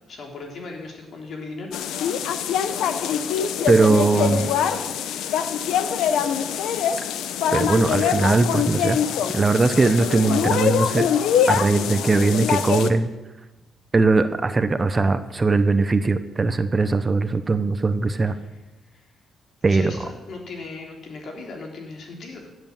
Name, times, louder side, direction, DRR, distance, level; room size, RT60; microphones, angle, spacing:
voice 1, 0.1-1.7 4.1-4.9 18.3-18.4 18.9-19.1 19.7-22.5, left 3 dB, 60° left, 1 dB, 3.6 m, -37 dB
sound 1, 1.7-12.9, left 8 dB, 80° left, 0.9 m, -23 dB
voice 2, 3.7-4.5 7.5-9.0 9.3-11.1 11.5-13.1 13.9-18.4 19.6-19.9, right 3 dB, 25° right, 11 dB, 0.9 m, -20 dB
16.0 x 8.1 x 7.4 m, 1.1 s
cardioid pair, 90°, 0 cm